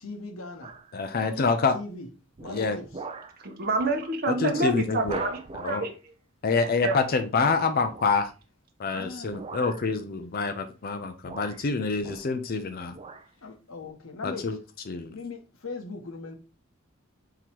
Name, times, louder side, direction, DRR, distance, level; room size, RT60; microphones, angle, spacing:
voice 1, 0.0-0.7 1.2-2.1 2.4-3.0 8.9-9.4 13.4-14.6 15.1-16.4, left 3 dB, 85° left, 1.0 m, -39 dB
sound 1, 0.6-1.0 1.5-1.8 2.4-3.4 3.8-4.0 4.3-4.4 5.0-5.9 7.9-8.3 9.3-9.9 10.8-10.9 11.2-12.6 12.9-13.3 13.8-13.9, right 4 dB, 30° right, 0.5 m, -41 dB
voice 2, 0.9-1.7 2.5-2.8 4.3-5.2 5.6-5.9 6.4-8.3 8.8-12.9 14.2-14.6 14.9-15.1, left 4 dB, 45° left, 0.5 m, -27 dB
voice 3, 3.4-5.9 6.8-7.0 8.9-9.0, right 2 dB, 45° right, 0.8 m, -28 dB
3.8 x 3.0 x 4.4 m
head